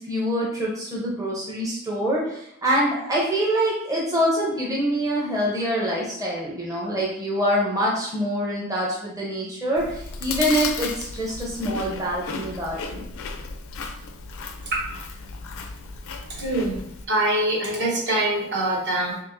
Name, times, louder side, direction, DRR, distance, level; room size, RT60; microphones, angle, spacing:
voice 1, 0.0-13.0, equal, 15° right, -5 dB, 0.6 m, -25 dB
Chewing mastication, 9.8-17.1, left 5 dB, 65° left, 0.4 m, -35 dB
voice 2, 16.3-16.8 17.1-19.2, right 1 dB, 55° right, -3 dB, 1.0 m, -24 dB
4.4 x 2.9 x 2.5 m, 0.75 s
head